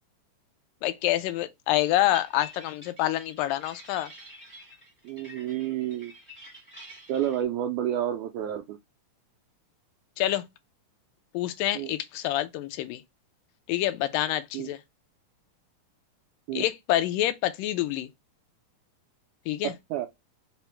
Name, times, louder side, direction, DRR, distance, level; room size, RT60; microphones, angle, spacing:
voice 1, 0.8-4.1 10.2-10.4 11.3-13.0 13.7-14.8 16.5-18.1 19.5-19.7, left 14 dB, 85° left, 2.2 m, -27 dB
sound 1, 1.8-7.4, equal, 10° left, 0.4 m, -48 dB
voice 2, 5.0-6.1 7.1-8.8 11.7-11.9 14.5-14.7 16.5-16.7 19.6-20.1, right 11 dB, 80° right, 1.7 m, -30 dB
5.7 x 2.0 x 4.3 m
omnidirectional pair, 3.8 m